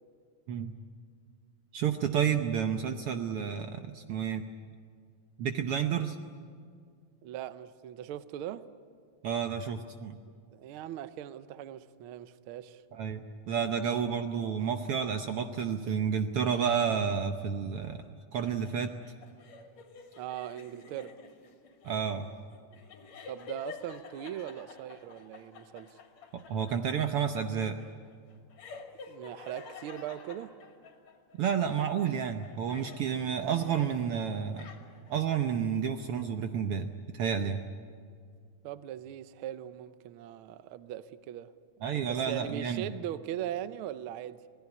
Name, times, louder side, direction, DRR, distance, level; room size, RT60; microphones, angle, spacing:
voice 1, 1.7-4.4 5.4-6.2 9.2-10.1 12.9-18.0 18.3-18.9 21.8-22.3 26.3-27.8 31.4-34.7 35.1-37.6 41.8-42.9, right 7 dB, 65° right, 1.5 m, -30 dB
voice 2, 7.2-8.7 10.5-12.8 20.2-21.2 23.3-26.0 29.1-30.5 38.6-41.5 41.9-44.4, right 11 dB, 85° right, 1.2 m, -40 dB
sound 1, 18.4-31.4 31.8-34.0 34.3-35.2, left 4 dB, 65° left, 3.4 m, -49 dB
26.5 x 18.5 x 9.7 m
omnidirectional pair, 3.4 m